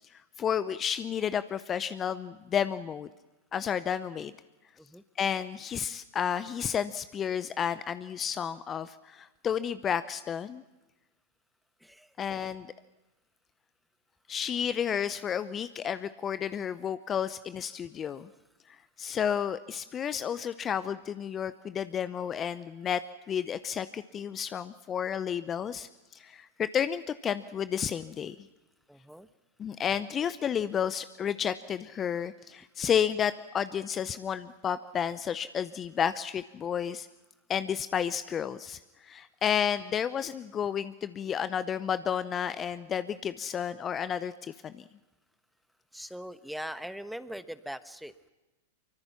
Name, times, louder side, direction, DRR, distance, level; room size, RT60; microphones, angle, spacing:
voice 1, 0.1-3.1 3.5-4.3 5.2-10.6 12.2-12.7 14.3-18.3 19.0-23.0 23.3-28.5 29.6-37.1 37.5-44.8, left 8 dB, 25° left, 14 dB, 0.7 m, -31 dB
voice 2, 11.8-12.3 17.7-17.8 28.9-29.3 45.9-48.3, equal, ahead, 13 dB, 1.0 m, -41 dB
25.0 x 24.0 x 5.9 m, 1.1 s
hypercardioid pair, 100°, 0 cm